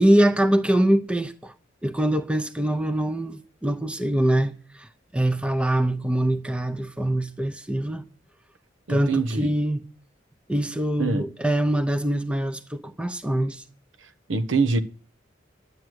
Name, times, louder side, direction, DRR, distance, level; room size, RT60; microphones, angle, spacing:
voice 1, 0.0-1.5 1.8-8.0 8.9-9.8 10.5-13.6, right 1 dB, 5° right, 0.7 m, -23 dB
voice 2, 8.9-9.5 11.0-11.2 14.3-14.8, right 4 dB, 85° right, 1.0 m, -23 dB
11.0 x 9.3 x 6.3 m
head